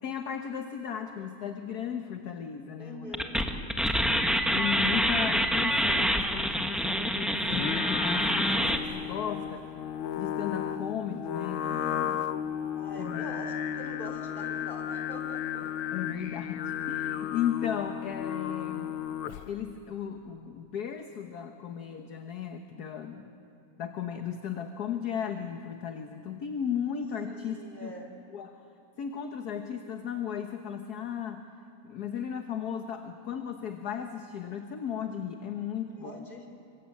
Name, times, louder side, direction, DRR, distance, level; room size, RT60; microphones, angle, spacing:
voice 1, 0.0-3.1 4.0-4.2 4.5-9.7 10.2-12.2 13.0-13.2 15.6-19.0 19.5-23.3 23.8-27.9 28.3-28.6 29.0-31.5 31.8-36.3, left 8 dB, 55° left, 5 dB, 1.5 m, -35 dB
voice 2, 2.8-3.4 12.7-15.7 27.3-28.2 36.0-36.5, equal, 25° left, 3 dB, 3.8 m, -44 dB
sound 1, 3.1-8.8, equal, ahead, 1.1 m, -26 dB
Singing, 7.4-19.6, left 10 dB, 80° left, 1.7 m, -34 dB
27.5 x 25.5 x 8.5 m, 2.8 s
omnidirectional pair, 2.2 m